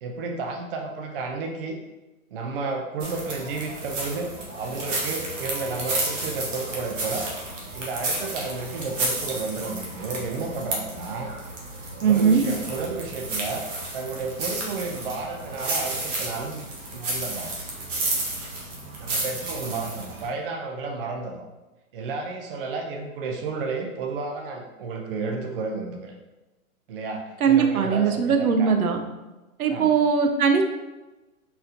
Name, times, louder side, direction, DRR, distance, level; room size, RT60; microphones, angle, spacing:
voice 1, 0.0-1.8 2.3-7.3 7.7-11.3 12.0-13.7 13.9-16.6 16.9-17.5 19.0-21.4 21.9-26.1 26.9-28.7 29.7-30.0, right 3 dB, 40° right, 2 dB, 0.5 m, -32 dB
sound 1, 3.0-20.3, right 2 dB, 60° right, 1.3 m, -32 dB
voice 2, 12.0-12.4 27.4-29.0 29.6-30.6, right 6 dB, 80° right, 5 dB, 0.7 m, -20 dB
4.1 x 3.9 x 2.7 m, 1.1 s
hypercardioid pair, 140°, 43 cm